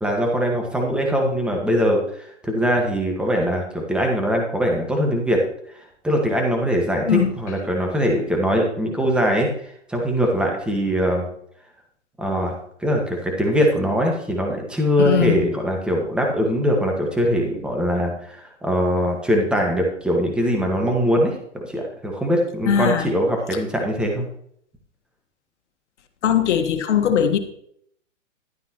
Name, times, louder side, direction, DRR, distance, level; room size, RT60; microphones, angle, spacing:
voice 1, 0.0-5.4 6.0-11.3 12.2-12.5 12.8-24.2, equal, 5° right, 0 dB, 1.6 m, -22 dB
voice 2, 15.0-15.5 22.7-23.1 26.2-27.4, left 8 dB, 70° left, 6 dB, 1.6 m, -20 dB
12.0 x 9.4 x 3.0 m, 0.68 s
hypercardioid pair, 140°, 36 cm